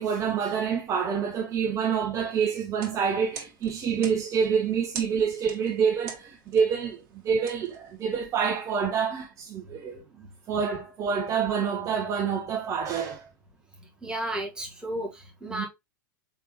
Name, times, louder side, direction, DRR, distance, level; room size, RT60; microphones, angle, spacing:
voice 1, 0.0-13.3 15.5-15.7, right 6 dB, 30° right, 0.7 m, -27 dB
sound 1, 2.6-8.4, right 6 dB, 45° right, 1.6 m, -45 dB
voice 2, 14.0-15.7, right 1 dB, 5° right, 1.4 m, -33 dB
4.5 x 3.4 x 2.9 m
figure-of-eight pair, 95°, 11 cm